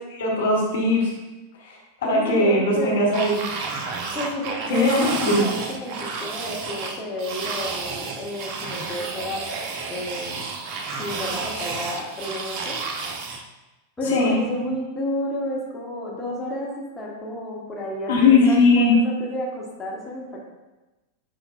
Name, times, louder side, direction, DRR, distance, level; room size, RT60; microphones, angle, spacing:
voice 1, 0.1-1.1 1.6-3.4 4.7-5.5 14.1-14.4 18.1-18.9, left 2 dB, 60° left, -3 dB, 1.4 m, -19 dB
voice 2, 2.0-3.1 4.1-9.4 9.9-10.5 11.0-12.8 14.0-20.4, left 1 dB, 15° left, -4 dB, 1.3 m, -31 dB
sound 1, 3.1-13.4, right 4 dB, 40° right, 0.6 m, -31 dB
9.7 x 4.1 x 2.5 m, 1.1 s
figure-of-eight pair, 90°, 0 cm